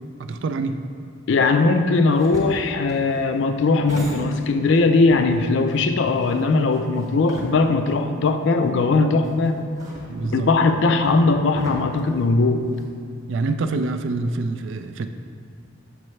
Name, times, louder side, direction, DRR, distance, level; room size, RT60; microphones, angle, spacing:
voice 1, 0.2-0.8 10.1-10.5 13.3-15.1, right 3 dB, 60° right, 9 dB, 0.3 m, -26 dB
voice 2, 1.3-9.6 10.3-12.7, left 3 dB, 60° left, 7 dB, 0.4 m, -19 dB
sound 1, 1.9-4.8 5.1-7.9 8.3-8.4 9.2-12.9, equal, 15° right, 0.9 m, -38 dB
6.6 x 5.4 x 3.2 m, 2.3 s
head